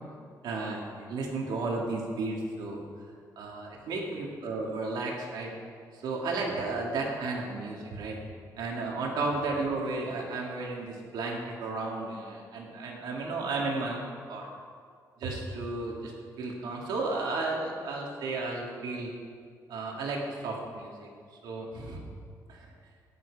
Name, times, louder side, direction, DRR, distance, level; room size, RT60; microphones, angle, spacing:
voice 1, 0.4-2.8 3.4-5.5 6.0-8.2 8.6-14.5 15.2-16.1 16.4-19.1 19.7-21.1 21.4-22.0 22.5-22.7, right 3 dB, 85° right, -1 dB, 2.5 m, -33 dB
16.0 x 11.0 x 4.9 m, 2.1 s
cardioid pair, 155°, 7 cm